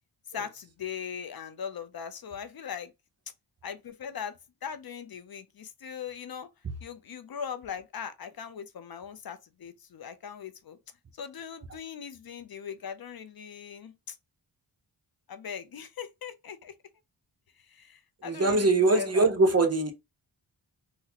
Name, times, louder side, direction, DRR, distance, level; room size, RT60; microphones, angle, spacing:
voice 1, 0.3-2.9 3.6-4.3 4.6-6.5 6.8-10.8 11.2-14.2 15.3-16.7 17.7-19.3, left 7 dB, 55° left, 0.5 m, -40 dB
voice 2, 18.2-19.9, right 2 dB, 35° right, 0.7 m, -22 dB
3.9 x 2.1 x 2.8 m
wide cardioid pair, 105°, 44 cm